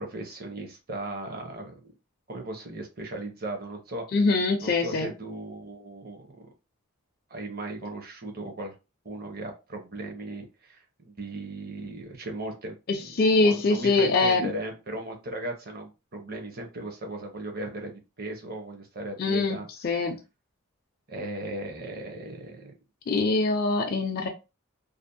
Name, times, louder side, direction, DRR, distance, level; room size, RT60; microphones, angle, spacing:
voice 1, 0.0-1.9 2.3-4.0 4.6-6.5 7.3-8.7 9.0-19.7 21.1-22.7, right 1 dB, 45° right, 3 dB, 0.7 m, -37 dB
voice 2, 4.1-5.1 12.9-14.5 19.2-20.2 23.1-24.3, left 3 dB, 45° left, 2 dB, 0.4 m, -23 dB
2.5 x 2.0 x 2.6 m, 0.27 s
head